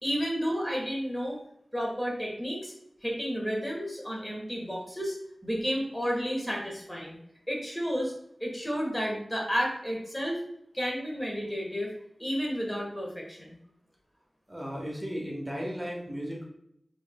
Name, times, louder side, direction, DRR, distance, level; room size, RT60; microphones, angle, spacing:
voice 1, 0.0-1.4 1.7-2.7 3.0-5.2 5.4-7.2 7.5-8.1 8.4-10.4 10.7-11.9 12.2-13.6, equal, 15° left, -2 dB, 1.2 m, -31 dB
voice 2, 14.5-16.4, equal, 20° right, -2 dB, 1.2 m, -35 dB
4.7 x 3.4 x 2.2 m, 0.74 s
cardioid pair, 45°, 0 cm